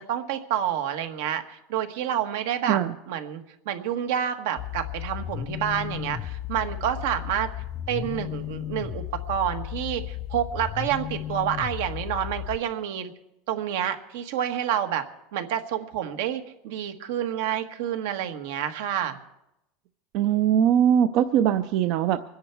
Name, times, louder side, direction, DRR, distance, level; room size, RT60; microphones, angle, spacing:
voice 1, 0.1-2.8 3.1-3.4 3.6-7.5 7.9-13.1 13.5-15.0 15.3-19.2, right 10 dB, 75° right, 7 dB, 1.4 m, -28 dB
sound 1, 4.6-12.6, left 12 dB, 30° left, 0.4 m, -34 dB
voice 2, 20.1-22.2, right 9 dB, 50° right, 9 dB, 0.5 m, -21 dB
24.5 x 10.0 x 4.6 m, 0.88 s
supercardioid pair, 165°, 0 cm